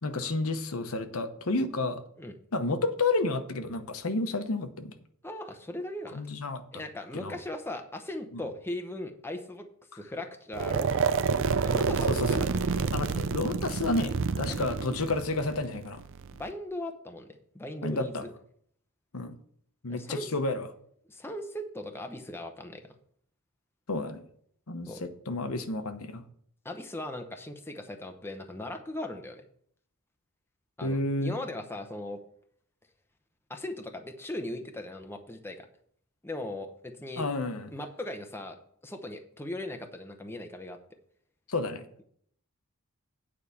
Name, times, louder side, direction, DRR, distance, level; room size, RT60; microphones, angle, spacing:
voice 1, 0.0-2.0 2.5-4.9 6.1-6.8 7.1-7.4 12.1-12.5 12.9-16.0 17.8-18.2 19.1-19.3 19.8-20.7 23.9-24.2 24.7-26.2 30.8-31.4 37.2-37.7 41.5-41.8, left 2 dB, 65° left, 8 dB, 1.0 m, -31 dB
voice 2, 5.2-6.3 6.7-9.7 9.9-11.2 11.6-12.4 12.7-13.0 14.5-14.6 16.3-18.3 19.9-20.3 21.1-22.9 24.9-25.0 26.6-29.4 30.8-32.2 33.5-35.7 36.2-37.2 37.7-38.6 38.8-40.8, left 1 dB, 10° left, 5 dB, 0.8 m, -38 dB
sound 1, 10.5-16.5, right 5 dB, 60° right, 0.5 m, -29 dB
9.3 x 4.9 x 7.0 m, 0.63 s
head